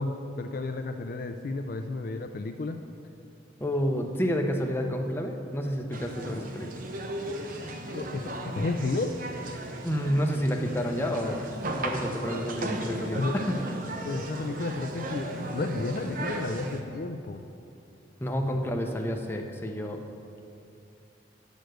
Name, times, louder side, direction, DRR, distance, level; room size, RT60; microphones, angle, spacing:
voice 1, 0.0-2.8 7.9-9.1 13.2-13.4 14.0-17.4, left 3 dB, 50° left, 6 dB, 0.4 m, -32 dB
voice 2, 3.6-6.7 9.8-11.4 11.7-13.7 18.2-20.0, equal, 10° left, 2 dB, 0.6 m, -29 dB
sound 1, 5.9-16.8, right 1 dB, 45° right, 0.8 m, -36 dB
9.2 x 6.6 x 6.3 m, 2.7 s
head